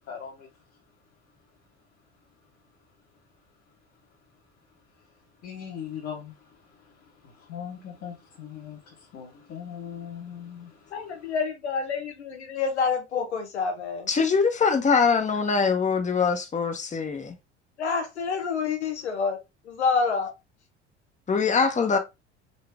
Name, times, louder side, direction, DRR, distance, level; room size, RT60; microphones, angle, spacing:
voice 1, 0.1-0.5 5.4-6.3 7.2-10.9, left 8 dB, 45° left, 1.5 m, -39 dB
voice 2, 10.9-14.1 17.8-19.4 19.6-20.3, left 5 dB, 85° left, 1.1 m, -27 dB
voice 3, 14.1-17.3 21.3-22.0, left 5 dB, 20° left, 1.0 m, -23 dB
4.1 x 3.2 x 3.5 m
hypercardioid pair, 65°, 33 cm